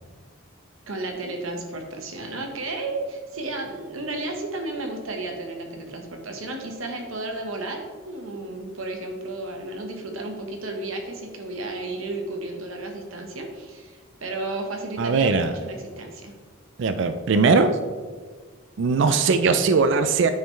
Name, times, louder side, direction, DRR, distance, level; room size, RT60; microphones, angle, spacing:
voice 1, 0.9-16.3, right 2 dB, 80° right, 3 dB, 1.2 m, -33 dB
voice 2, 15.0-15.5 16.8-17.8 18.8-20.3, right 4 dB, 60° right, 9 dB, 0.4 m, -20 dB
8.8 x 5.4 x 3.2 m, 1.5 s
head